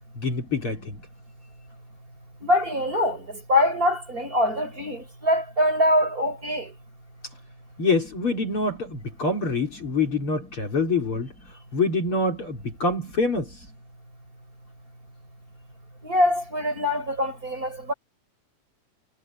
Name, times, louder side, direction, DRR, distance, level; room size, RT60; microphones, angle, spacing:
voice 1, 0.2-1.0 7.8-11.3 11.7-13.5, left 3 dB, 45° left, 4.6 m, -25 dB
voice 2, 2.4-6.7 16.0-17.9, left 1 dB, 25° right, 5.9 m, -23 dB
omnidirectional pair, 3.6 m